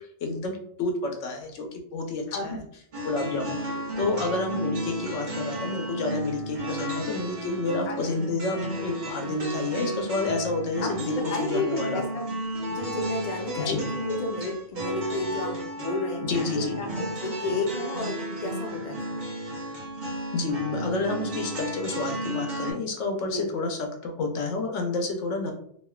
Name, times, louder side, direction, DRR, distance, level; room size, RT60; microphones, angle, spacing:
voice 1, 0.2-2.6 3.0-12.0 13.6-13.8 16.3-16.8 20.3-25.5, left 3 dB, 85° left, 3 dB, 1.0 m, -29 dB
voice 2, 2.3-2.6 3.7-3.8 7.9-8.0 10.8-12.2 12.6-19.3 23.3-23.5, left 2 dB, 45° left, 1 dB, 0.5 m, -32 dB
sound 1, 2.9-22.7, right 1 dB, 45° right, 0.9 m, -33 dB
3.0 x 2.4 x 2.2 m, 0.64 s
omnidirectional pair, 1.2 m